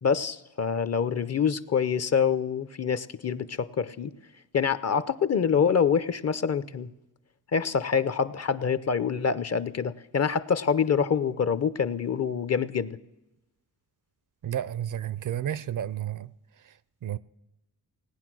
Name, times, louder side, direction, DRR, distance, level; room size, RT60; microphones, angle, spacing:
voice 1, 0.0-4.1 4.5-6.9 7.5-13.0, left 6 dB, 40° left, 0.7 m, -26 dB
voice 2, 14.4-16.3 17.0-17.2, right 10 dB, 55° right, 0.5 m, -31 dB
17.5 x 9.8 x 6.1 m
cardioid pair, 75°, 39 cm